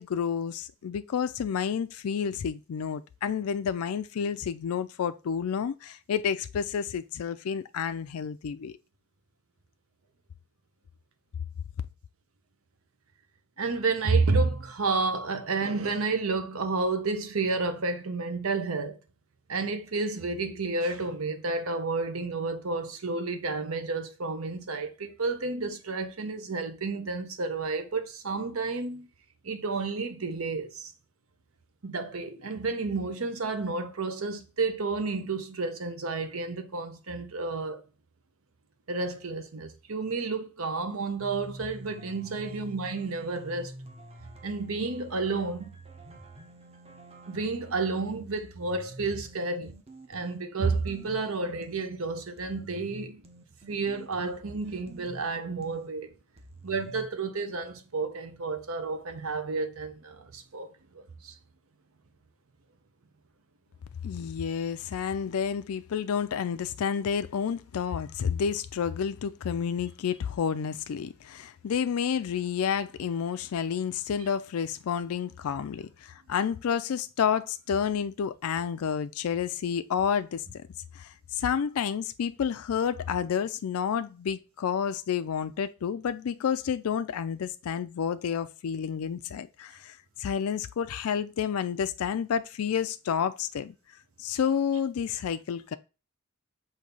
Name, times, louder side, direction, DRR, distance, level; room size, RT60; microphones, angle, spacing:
voice 1, 0.0-8.8 64.0-80.6 81.0-93.7 94.2-95.8, left 7 dB, 80° left, 0.4 m, -30 dB
voice 2, 13.6-19.0 19.5-29.1 29.4-30.9 31.8-37.8 38.9-43.7 44.4-45.7 47.3-49.7 50.1-53.2 53.7-56.1 56.6-61.3, right 3 dB, 70° right, 0.9 m, -31 dB
sound 1, 41.2-51.9 52.4-55.9 56.4-57.1, right 1 dB, 30° right, 0.9 m, -48 dB
6.3 x 2.8 x 5.3 m
head